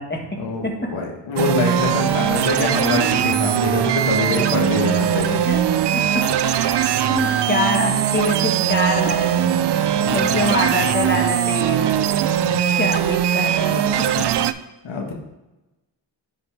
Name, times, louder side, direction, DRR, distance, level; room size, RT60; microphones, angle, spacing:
voice 1, 0.4-5.4 10.0-10.4 12.4-12.6 14.8-15.1, left 4 dB, 80° left, 1 dB, 1.3 m, -25 dB
sound 1, 1.4-14.5, right 10 dB, 65° right, 0.5 m, -20 dB
voice 2, 5.9-6.8 7.0-12.0 12.6-13.8 14.2-14.3, left 1 dB, 20° left, 1 dB, 1.5 m, -25 dB
9.9 x 4.0 x 3.4 m, 1.0 s
cardioid pair, 60°, 46 cm